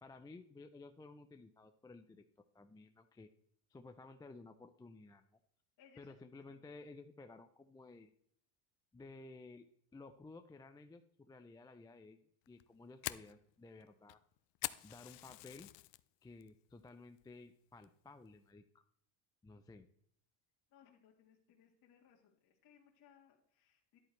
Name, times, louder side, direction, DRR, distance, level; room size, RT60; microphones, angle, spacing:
voice 1, 0.0-2.2 2.5-3.3 3.7-5.4 6.0-8.1 8.9-9.7 9.9-12.2 12.5-14.2 14.8-15.7 16.2-18.8 19.4-19.9, left 3 dB, 10° left, 7 dB, 0.4 m, -55 dB
voice 2, 5.8-6.1 6.5-6.6 20.7-24.0, left 8 dB, 45° left, -1 dB, 1.8 m, -66 dB
Fire, 12.4-16.0 16.4-16.8 17.2-17.3 17.8-18.2, left 20 dB, 65° left, 0.6 m, -44 dB
11.0 x 8.4 x 3.2 m, 0.64 s
supercardioid pair, 100°, 49 cm